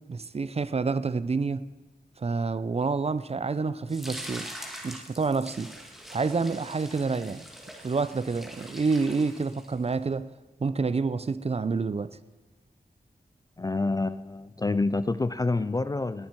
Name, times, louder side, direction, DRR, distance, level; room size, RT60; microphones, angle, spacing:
voice 1, 0.1-1.7 2.2-4.5 4.8-5.7 6.1-7.4 7.8-10.3 10.6-12.1, right 4 dB, 40° right, 15 dB, 0.5 m, -28 dB
sound 1, 3.9-9.9, equal, ahead, 1.9 m, -43 dB
voice 2, 13.6-16.3, left 3 dB, 25° left, 15 dB, 0.3 m, -27 dB
19.0 x 7.4 x 4.5 m, 1.2 s
wide cardioid pair, 110°, 17 cm